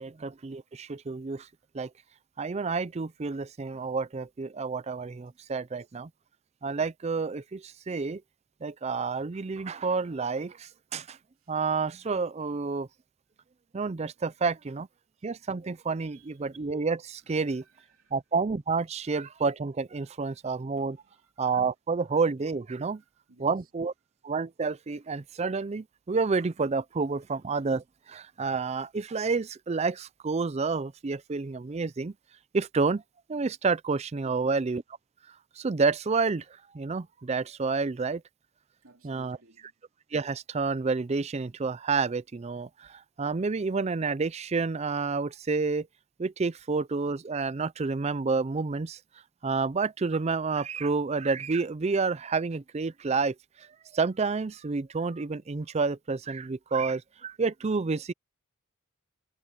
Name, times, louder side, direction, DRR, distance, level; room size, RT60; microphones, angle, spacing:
voice 1, 0.0-1.5 1.7-1.9 2.4-6.1 6.6-8.2 8.6-11.2 11.5-12.9 13.7-14.9 15.2-17.6 18.1-21.0 21.4-23.0 23.4-23.9 24.2-32.1 32.5-33.0 33.3-34.8 35.6-36.4 36.7-38.2 39.0-39.4 40.1-45.9 46.2-49.0 49.4-53.7 53.9-58.1, right 4 dB, 30° right, 0.4 m, -29 dB
voice 2, 16.0-16.4 17.2-18.2 20.0-20.4 20.9-21.3 22.0-22.1 22.9-23.7 38.8-39.7, right 3 dB, 75° right, 2.6 m, -61 dB
head